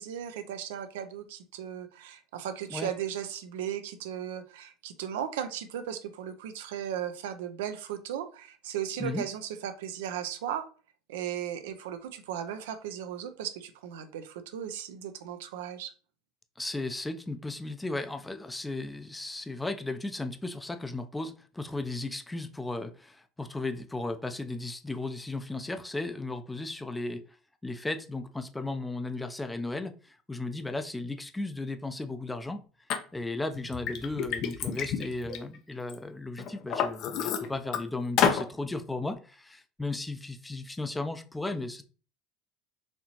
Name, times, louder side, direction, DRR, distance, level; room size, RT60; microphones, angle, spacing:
voice 1, 0.0-10.7 11.1-15.9, right 9 dB, 90° right, 0.5 m, -36 dB
voice 2, 16.6-27.2 27.6-32.6 33.1-41.8, left 2 dB, 10° left, 0.5 m, -35 dB
Liquid, 32.9-33.0 33.5-35.9 36.4-37.8 38.2-38.5, left 7 dB, 60° left, 0.6 m, -29 dB
4.3 x 2.8 x 2.9 m
supercardioid pair, 105°, 0 cm